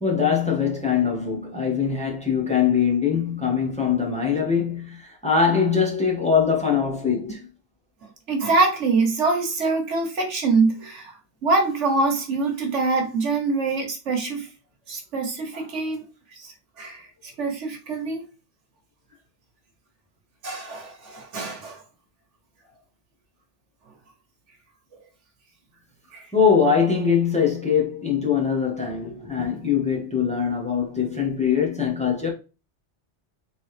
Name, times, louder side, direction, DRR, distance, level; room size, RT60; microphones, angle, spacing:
voice 1, 0.0-7.5 26.3-32.3, left 6 dB, 5° left, 1.2 m, -22 dB
voice 2, 8.3-11.1 11.4-14.5 14.9-16.1 16.4-16.5 16.8-17.0 17.4-18.2 20.4-21.8 26.1-26.3, right 3 dB, 80° right, 1.5 m, -24 dB
3.9 x 3.8 x 3.2 m
omnidirectional pair, 1.2 m